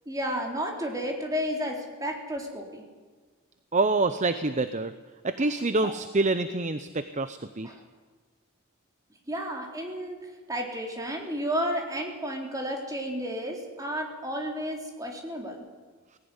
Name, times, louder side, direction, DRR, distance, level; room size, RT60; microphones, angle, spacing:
voice 1, 0.1-2.8 5.8-5.9 7.6-7.8 9.3-15.7, equal, 15° right, 1 dB, 3.8 m, -32 dB
voice 2, 3.7-4.9 5.2-7.7, right 3 dB, 35° right, 11 dB, 0.8 m, -26 dB
19.0 x 17.0 x 9.8 m, 1.4 s
head